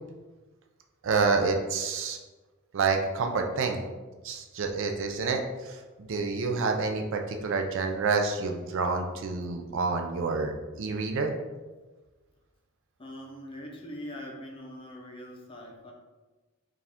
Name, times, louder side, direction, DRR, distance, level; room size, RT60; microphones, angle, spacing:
voice 1, 1.0-2.2 2.7-3.8 4.2-11.3, right 4 dB, 60° right, 4 dB, 0.4 m, -28 dB
voice 2, 13.0-15.9, equal, 25° left, 0 dB, 0.6 m, -42 dB
4.7 x 2.4 x 3.5 m, 1.2 s
head